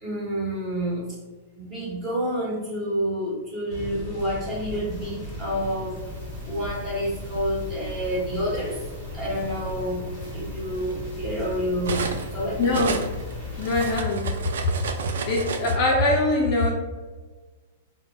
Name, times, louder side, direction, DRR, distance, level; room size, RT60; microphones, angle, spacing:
voice 1, 0.0-1.2 1.6-6.0 6.4-8.8 9.1-12.6 13.8-13.9, equal, 15° right, -7 dB, 1.1 m, -29 dB
sound 1, 3.7-14.0, left 1 dB, 10° left, 0.9 m, -36 dB
Cutlery silverware, 6.2-7.5 8.5-8.7 9.1-12.3 12.6-15.8, right 4 dB, 80° right, 0.3 m, -32 dB
voice 2, 12.6-13.0 13.6-14.3 15.3-16.7, left 2 dB, 35° left, -2 dB, 0.5 m, -22 dB
4.1 x 2.1 x 2.2 m, 1.3 s
supercardioid pair, 165°, 0 cm